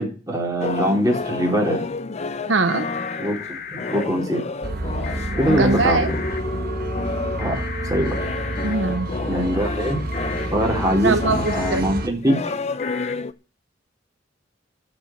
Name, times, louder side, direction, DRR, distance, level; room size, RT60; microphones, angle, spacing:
voice 1, 0.0-1.9 3.2-3.4 3.7-4.5 5.3-6.1 7.4-8.1 9.3-10.0 10.5-12.5, equal, 20° right, -1 dB, 3.9 m, -23 dB
sound 1, 0.6-13.3, left 3 dB, 35° left, 0.7 m, -30 dB
voice 2, 2.5-2.9 5.5-6.1 8.6-9.1 11.0-11.9, right 3 dB, 70° right, 9 dB, 0.9 m, -21 dB
sound 2, 2.7-4.1 5.0-6.4 7.4-8.8 10.1-10.5 11.5-11.8 12.8-13.1, left 7 dB, 55° left, 1.3 m, -35 dB
sound 3, 4.6-12.1, right 1 dB, 50° right, 1.5 m, -29 dB
12.5 x 5.5 x 9.1 m, 0.35 s
head